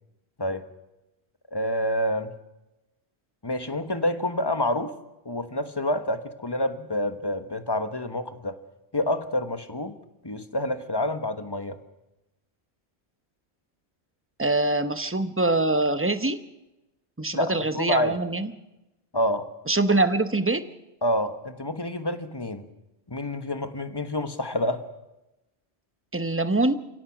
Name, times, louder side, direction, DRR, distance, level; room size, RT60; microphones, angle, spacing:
voice 1, 1.5-2.3 3.4-4.9 5.2-8.5 8.9-9.9 10.2-11.8 17.3-18.1 19.1-19.5 21.0-22.6 23.1-24.9, left 1 dB, 20° left, 9 dB, 1.4 m, -28 dB
voice 2, 14.4-16.4 17.2-18.5 19.7-20.7 26.1-26.7, right 2 dB, 10° right, 10 dB, 1.0 m, -24 dB
30.0 x 17.0 x 6.1 m, 0.96 s
omnidirectional pair, 1.1 m